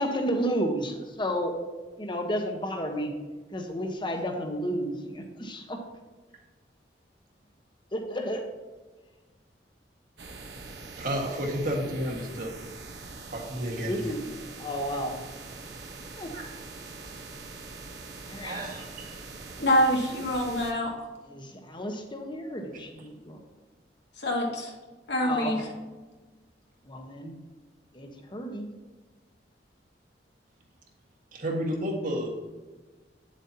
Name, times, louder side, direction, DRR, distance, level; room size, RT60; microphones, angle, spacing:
voice 1, 0.0-1.6 2.0-3.1 3.5-5.8 7.9-8.4 13.7-15.5 16.1-16.3 18.3-18.6 21.2-23.4 25.2-25.7 26.9-27.4 27.9-28.7, equal, 30° left, 4 dB, 1.2 m, -32 dB
sound 1, 10.2-20.7, right 3 dB, 70° right, 1.2 m, -43 dB
voice 2, 11.0-12.5 13.3-14.1 16.3-16.5 16.8-17.2 18.4-19.2 22.7-22.8 31.4-32.3, equal, 50° right, 1 dB, 1.7 m, -32 dB
voice 3, 19.6-20.9 24.2-24.7 25.1-25.6, equal, 85° left, -2 dB, 2.2 m, -25 dB
9.2 x 7.5 x 2.8 m, 1.3 s
head